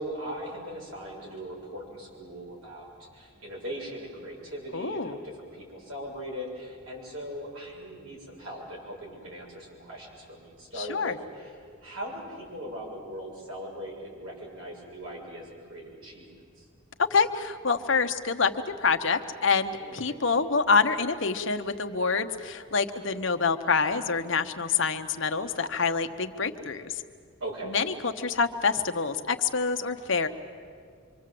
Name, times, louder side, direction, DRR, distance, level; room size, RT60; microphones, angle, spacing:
voice 1, 0.0-16.2 16.6-16.7 19.8-20.2 27.4-27.8, equal, 80° right, -2 dB, 7.1 m, -40 dB
voice 2, 4.7-5.1 10.8-11.2 17.1-18.5 18.8-26.9 27.7-30.3, left 5 dB, 60° left, 7 dB, 1.1 m, -26 dB
26.0 x 24.5 x 7.8 m, 2.2 s
head